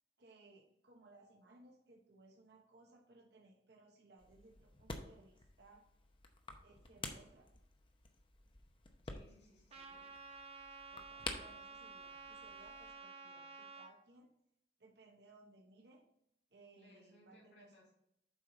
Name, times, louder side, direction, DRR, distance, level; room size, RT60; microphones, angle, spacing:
voice 1, 0.2-5.9 6.6-7.5 10.9-14.3 14.8-16.0 16.5-17.7, right 2 dB, 65° right, 0 dB, 1.0 m, -63 dB
sound 1, 4.2-12.9, left 3 dB, 30° left, 0.7 m, -51 dB
voice 2, 9.0-10.1 16.8-17.9, left 1 dB, 80° left, -6 dB, 2.4 m, -65 dB
Trumpet, 9.7-13.9, right 4 dB, 35° right, 0.8 m, -52 dB
7.5 x 4.9 x 3.9 m, 0.77 s
head